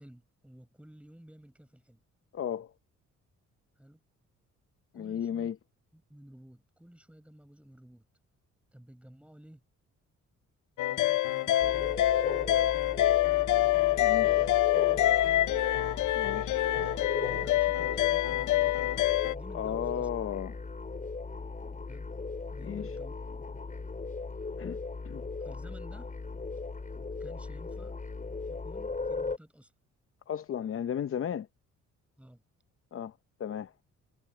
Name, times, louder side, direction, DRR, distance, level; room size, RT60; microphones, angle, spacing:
voice 1, 0.0-2.0 3.8-4.0 4.9-5.5 5.9-8.1 8.7-9.6 10.9-12.0 12.4-13.0 14.2-14.5 14.8-15.5 16.8-20.1 21.9-22.1 22.5-23.2 23.5-23.7 25.4-26.1 27.2-28.0 28.5-29.7 32.2-32.4, right 1 dB, 5° right, 6.5 m, -53 dB
voice 2, 2.3-2.7 4.9-5.5 14.0-14.5 16.1-16.6 19.5-20.6 22.6-22.9 24.6-24.8 25.0-25.2 30.3-31.5 32.9-33.7, left 9 dB, 45° left, 0.8 m, -34 dB
sound 1, 10.8-19.3, left 15 dB, 80° left, 0.7 m, -26 dB
sound 2, 11.6-29.4, left 3 dB, 25° left, 6.8 m, -38 dB
cardioid pair, 90°, 30 cm